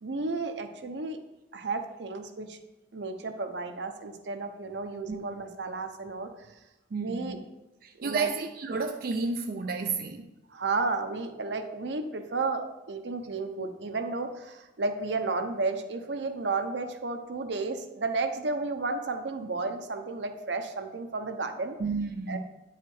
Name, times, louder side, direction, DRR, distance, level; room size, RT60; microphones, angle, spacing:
voice 1, 0.0-1.2 1.5-2.6 2.9-6.3 7.0-7.4 8.0-8.3 10.5-21.8 22.3-22.4, right 3 dB, 80° right, 6 dB, 0.8 m, -32 dB
voice 2, 6.9-7.4 7.8-10.3 21.8-22.4, right 4 dB, 55° right, 4 dB, 0.4 m, -31 dB
9.1 x 4.8 x 4.8 m, 1.0 s
head